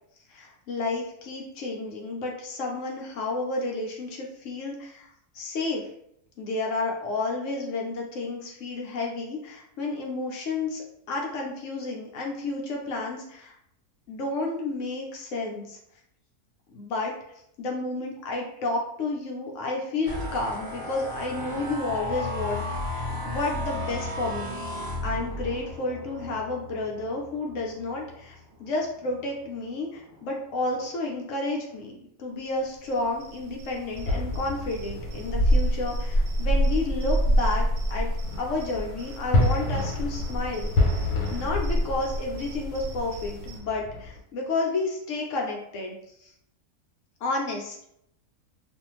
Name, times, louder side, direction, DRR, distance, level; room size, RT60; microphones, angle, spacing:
voice 1, 0.3-5.1 5.3-5.8 6.4-13.5 14.1-15.8 16.7-17.1 17.6-24.6 25.0-28.3 28.6-38.1 38.4-40.7 41.3-46.3 47.2-47.9, left 2 dB, 65° left, -1 dB, 0.8 m, -31 dB
sound 1, 20.1-29.4 29.9-30.2 30.6-31.0, left 1 dB, 40° right, 0.8 m, -35 dB
sound 2, 32.8-43.6, equal, 85° right, 1.3 m, -28 dB
Distant Fireworks, 33.9-44.2, left 2 dB, 85° left, 1.2 m, -30 dB
2.6 x 2.4 x 3.0 m, 0.74 s
omnidirectional pair, 1.6 m